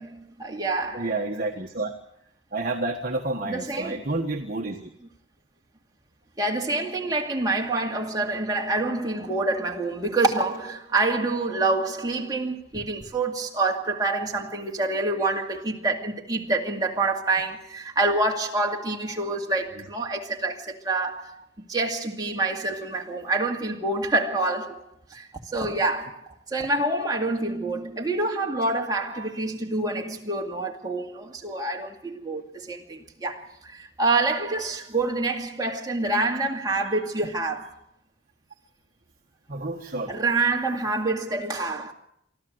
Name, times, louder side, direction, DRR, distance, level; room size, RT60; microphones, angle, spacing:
voice 1, 0.0-1.1 3.4-4.1 6.4-37.8 40.1-41.9, right 2 dB, 20° right, 2.3 m, -27 dB
voice 2, 0.9-1.9 2.5-4.9 39.5-40.1, right 2 dB, 40° right, 1.4 m, -29 dB
24.5 x 14.0 x 7.9 m
head